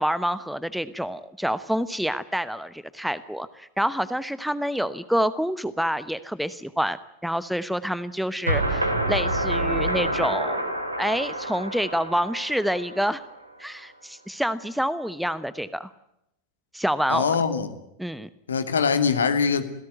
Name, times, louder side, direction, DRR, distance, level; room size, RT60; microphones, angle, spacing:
voice 1, 0.0-10.6 11.0-13.2 13.6-15.9 16.7-17.4 18.0-18.3, equal, ahead, 1.0 m, -27 dB
sound 1, 8.5-13.4, right 1 dB, 80° right, 3.7 m, -27 dB
voice 2, 17.1-17.7 18.5-19.6, left 6 dB, 70° left, 2.5 m, -22 dB
27.5 x 17.5 x 9.5 m
figure-of-eight pair, 90°, 0 cm